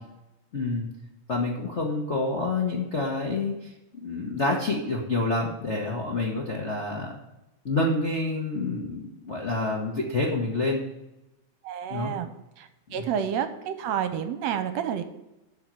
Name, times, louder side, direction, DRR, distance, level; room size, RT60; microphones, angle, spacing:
voice 1, 0.5-0.9 1.3-7.1 7.6-10.8 11.9-12.1 13.0-13.1, left 2 dB, 50° left, -2 dB, 0.8 m, -28 dB
voice 2, 11.6-12.3 12.6-15.0, right 8 dB, 75° right, 9 dB, 1.9 m, -29 dB
12.5 x 4.6 x 6.9 m, 0.96 s
omnidirectional pair, 3.3 m